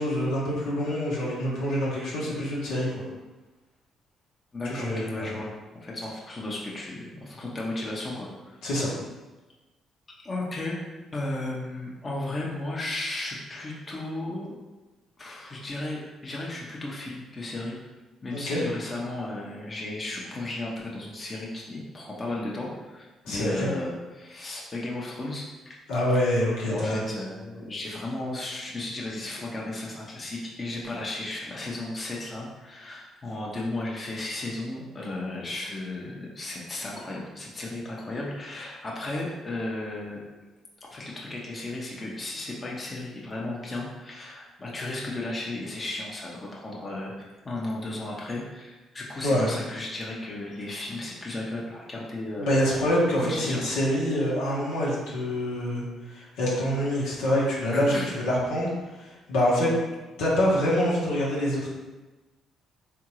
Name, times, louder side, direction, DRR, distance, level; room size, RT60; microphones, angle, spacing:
voice 1, 0.0-2.9 4.7-5.3 8.6-8.9 18.3-18.6 23.2-23.7 25.9-27.0 49.2-49.5 52.4-55.8 56.1-58.7 59.0-59.7 60.2-61.7, equal, 80° left, -6 dB, 1.3 m, -26 dB
voice 2, 4.5-8.6 10.2-10.7 11.1-14.5 15.2-17.8 18.2-25.8 26.1-26.2 26.7-40.2 40.9-52.9 53.2-53.7 57.7-58.1, left 2 dB, 35° left, -3 dB, 1.0 m, -34 dB
3.6 x 3.6 x 3.1 m, 1.2 s
hypercardioid pair, 55°, 0 cm